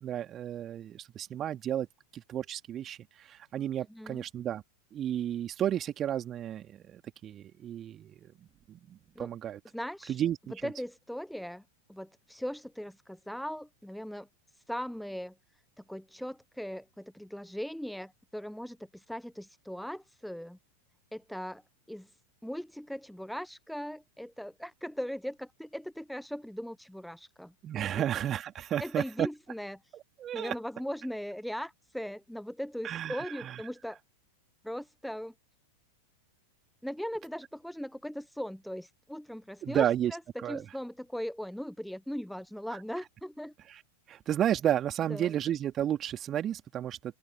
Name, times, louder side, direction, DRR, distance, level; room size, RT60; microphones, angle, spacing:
voice 1, 0.0-1.9 2.1-4.6 4.9-8.3 8.7-9.6 10.1-10.7 27.6-29.3 30.2-30.5 32.8-33.6 39.6-40.2 40.4-40.6 42.7-42.8 43.7-43.8 44.1-47.2, right 10 dB, 30° right, 2.7 m, -32 dB
voice 2, 3.9-4.2 9.2-9.3 9.7-10.2 10.6-11.6 11.9-14.3 14.7-15.3 15.9-20.6 21.1-21.6 21.9-22.1 22.4-27.5 27.9-28.0 28.8-29.8 30.3-34.0 34.6-35.3 36.8-43.5 45.1-45.3, equal, ahead, 1.0 m, -39 dB
open air
figure-of-eight pair, 90°, 0 cm